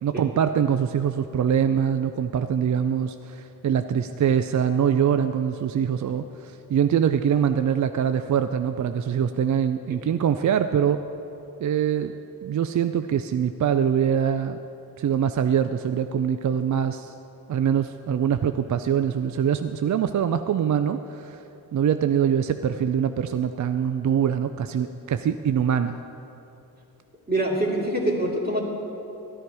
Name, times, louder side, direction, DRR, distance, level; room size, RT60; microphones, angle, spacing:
voice 1, 0.0-11.0 11.6-12.1 12.4-14.6 15.0-17.1 17.5-21.4 21.7-26.0, right 8 dB, 50° right, 10 dB, 0.5 m, -23 dB
voice 2, 27.3-28.6, right 1 dB, 25° right, -2 dB, 2.5 m, -24 dB
13.0 x 10.5 x 4.7 m, 2.9 s
cardioid pair, 70°, 39 cm